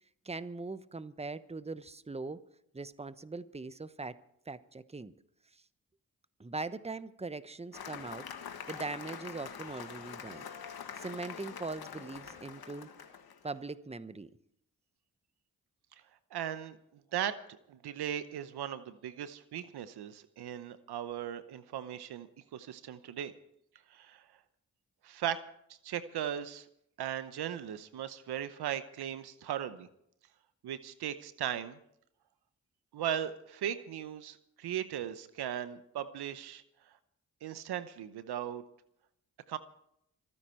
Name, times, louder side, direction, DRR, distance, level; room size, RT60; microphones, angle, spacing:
voice 1, 0.2-2.4 2.7-4.2 4.5-5.1 6.4-8.2 8.7-10.4 11.0-12.9 13.4-14.3, right 3 dB, 15° right, 1.0 m, -41 dB
Cheering / Applause, 7.7-13.5, left 7 dB, 70° left, 1.5 m, -45 dB
voice 2, 16.3-16.8 17.1-17.3 17.7-22.3 22.5-23.3 23.9-24.2 25.0-25.4 25.8-26.7 27.0-29.9 30.6-31.8 32.9-36.6 37.4-38.6 39.5-39.6, right 10 dB, 85° right, 0.9 m, -37 dB
25.5 x 9.9 x 4.4 m
supercardioid pair, 40°, 38 cm